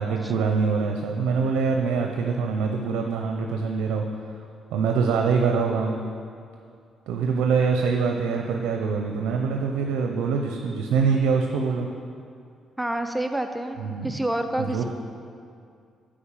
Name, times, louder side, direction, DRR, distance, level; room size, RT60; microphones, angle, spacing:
voice 1, 0.0-4.1 4.7-6.0 7.1-11.9 13.8-14.1 14.6-14.8, right 5 dB, 90° right, 2 dB, 0.6 m, -24 dB
voice 2, 12.8-14.8, right 1 dB, 10° right, 7 dB, 0.5 m, -28 dB
8.6 x 5.1 x 7.3 m, 2.3 s
cardioid pair, 90°, 0 cm